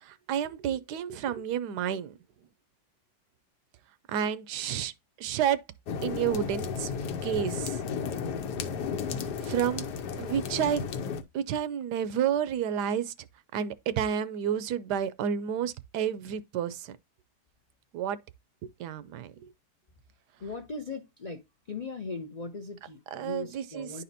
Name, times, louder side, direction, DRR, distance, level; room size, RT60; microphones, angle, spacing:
voice 1, 0.0-2.1 4.1-4.9 5.2-5.6 6.0-6.9 7.2-7.8 9.4-9.9 10.2-10.9 11.3-13.1 13.5-17.0 17.9-18.2 18.6-19.5 23.1-23.9, right 9 dB, 80° right, 1.2 m, -30 dB
sound 1, 5.9-11.2, left 6 dB, 80° left, 1.4 m, -33 dB
voice 2, 20.4-21.4 21.7-24.0, left 4 dB, 50° left, 0.5 m, -39 dB
10.5 x 4.2 x 2.6 m
omnidirectional pair, 1.8 m